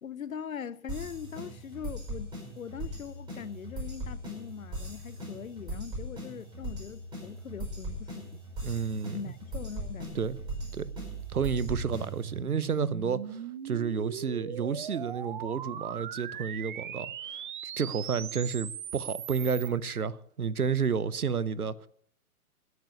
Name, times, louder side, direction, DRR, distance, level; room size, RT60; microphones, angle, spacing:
voice 1, 0.0-8.4 9.1-10.3, left 7 dB, 65° left, 0.8 m, -41 dB
sound 1, 0.9-12.4, equal, 10° right, 5.0 m, -40 dB
voice 2, 8.6-9.2 10.1-10.4 10.7-10.9 11.3-17.1 17.8-21.9, right 6 dB, 75° right, 0.9 m, -31 dB
sound 2, 9.8-19.7, right 9 dB, 35° right, 0.8 m, -40 dB
13.5 x 9.5 x 6.9 m
figure-of-eight pair, 125°, 45 cm